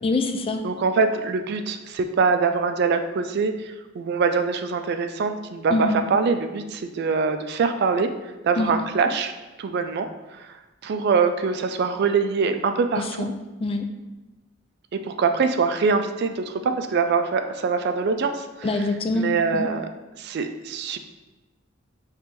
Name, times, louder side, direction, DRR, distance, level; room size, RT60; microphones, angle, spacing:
voice 1, 0.0-0.6 5.7-6.0 8.6-8.7 13.2-13.3 13.6-13.9 18.6-19.3 19.5-19.7, left 2 dB, 30° left, 6 dB, 0.3 m, -24 dB
voice 2, 0.6-9.3 9.6-10.1 10.3-13.3 14.9-18.7 19.1-19.9 20.2-21.0, right 5 dB, 55° right, 8 dB, 0.4 m, -24 dB
5.1 x 3.2 x 3.0 m, 1.1 s
head